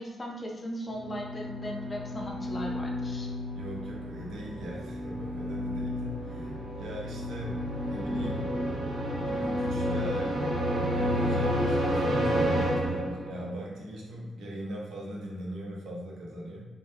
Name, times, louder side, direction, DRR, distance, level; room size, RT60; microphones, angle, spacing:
voice 1, 0.0-3.3, equal, 25° left, -1 dB, 0.5 m, -38 dB
sound 1, 0.9-13.5, equal, 50° right, 0.9 m, -31 dB
voice 2, 3.5-8.5 9.1-10.5 10.9-16.7, equal, 80° right, -3 dB, 0.8 m, -40 dB
3.4 x 2.2 x 2.7 m, 1.2 s
cardioid pair, 110°, 0 cm